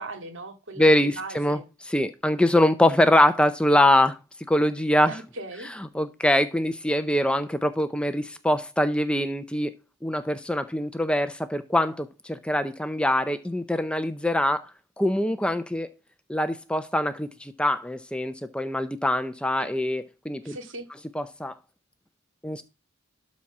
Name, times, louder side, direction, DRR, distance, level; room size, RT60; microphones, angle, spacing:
voice 1, 0.0-1.6 5.1-5.7 19.6-19.7 20.4-20.9, right 2 dB, 60° right, 2.2 m, -38 dB
voice 2, 0.8-4.2 4.5-5.1 5.9-9.7 10.0-14.7 15.0-15.9 16.3-20.6 21.1-21.5 22.4-22.6, left 1 dB, 5° left, 0.6 m, -23 dB
12.5 x 4.2 x 6.0 m
head